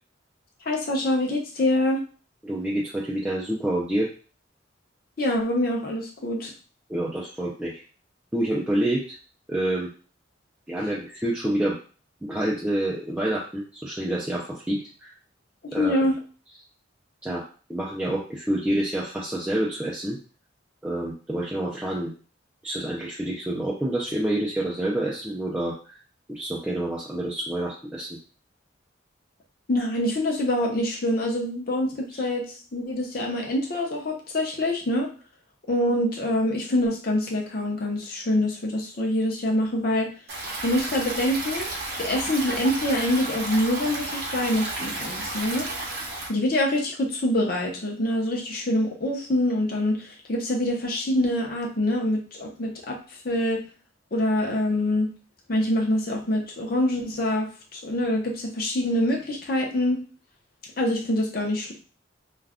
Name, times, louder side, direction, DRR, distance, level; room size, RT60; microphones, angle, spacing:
voice 1, 0.7-2.0 5.2-6.5 15.8-16.2 29.7-32.4 32.7-35.1 35.7-40.1 40.6-41.7 42.0-45.7 46.3-53.0 53.2-53.6 54.1-55.1 55.5-60.0 60.8-61.7, left 1 dB, 50° left, -1 dB, 0.7 m, -25 dB
voice 2, 2.4-4.1 6.9-7.8 8.3-9.2 9.5-9.9 10.7-11.8 12.2-15.1 15.7-16.1 17.2-17.4 17.7-20.2 20.8-22.1 22.6-26.0 26.3-28.1 32.1-32.3, right 1 dB, 5° right, -6 dB, 0.4 m, -28 dB
Stream, 40.3-46.3, right 2 dB, 50° right, 0.7 m, -32 dB
2.4 x 2.2 x 3.4 m, 0.38 s
head